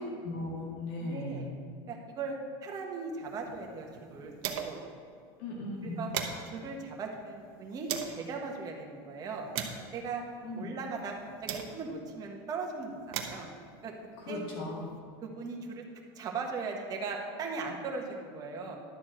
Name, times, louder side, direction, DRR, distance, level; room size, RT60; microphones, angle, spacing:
voice 1, 0.0-1.5 5.4-6.0 10.4-10.7 14.2-14.9, left 2 dB, 70° left, -3 dB, 2.0 m, -37 dB
voice 2, 1.0-1.5 1.9-4.8 6.0-6.1 6.5-9.5 9.9-10.2 10.6-11.1 11.4-13.5 13.8-13.9 14.3-14.4 15.2-15.8 16.1-18.8, right 4 dB, 30° right, 0 dB, 1.3 m, -38 dB
sound 1, 3.1-4.9 5.3-5.4 5.7-8.2 8.9-12.1 12.8-15.0, right 8 dB, 60° right, 1.1 m, -41 dB
11.5 x 4.4 x 7.6 m, 2.2 s
supercardioid pair, 150°, 13 cm